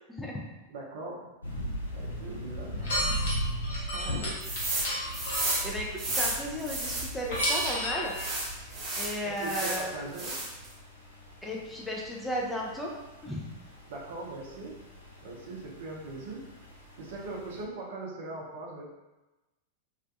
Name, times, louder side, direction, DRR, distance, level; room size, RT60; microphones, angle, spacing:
voice 1, 0.1-0.5 2.7-2.9 3.9-4.3 5.0-8.2 9.0-10.1 11.4-12.9 13.2-13.5, equal, 5° left, -3 dB, 0.4 m, -35 dB
voice 2, 0.7-1.3 1.9-2.9 9.2-10.4 13.9-14.8 15.2-16.4 17.0-18.9, right 2 dB, 55° right, -2 dB, 0.5 m, -40 dB
sound 1, 1.4-17.6, equal, 80° left, 0.4 m, -40 dB
sound 2, 2.8-5.8 7.3-8.3, equal, 60° left, 0.9 m, -31 dB
sound 3, 4.4-4.9 5.1-7.7 8.1-9.8 10.1-10.7, right 2 dB, 25° right, 0.9 m, -32 dB
2.4 x 2.2 x 2.5 m, 1.1 s
figure-of-eight pair, 90°, 0 cm